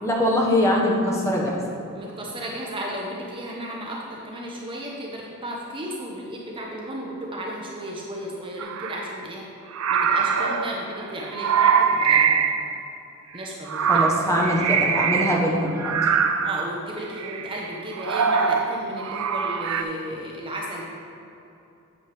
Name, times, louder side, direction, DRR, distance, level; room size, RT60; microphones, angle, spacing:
voice 1, 0.0-1.6 13.9-15.9, left 1 dB, 15° left, -3 dB, 1.1 m, -22 dB
voice 2, 1.9-9.4 9.9-12.5 13.3-14.0 14.5-14.7 16.4-20.9, right 1 dB, 25° right, -2 dB, 0.8 m, -34 dB
sound 1, 8.6-9.1 9.7-12.6 13.4-15.4 15.8-16.7 17.2-19.8, right 6 dB, 70° right, 0.5 m, -23 dB
8.4 x 7.6 x 3.4 m, 2.8 s
head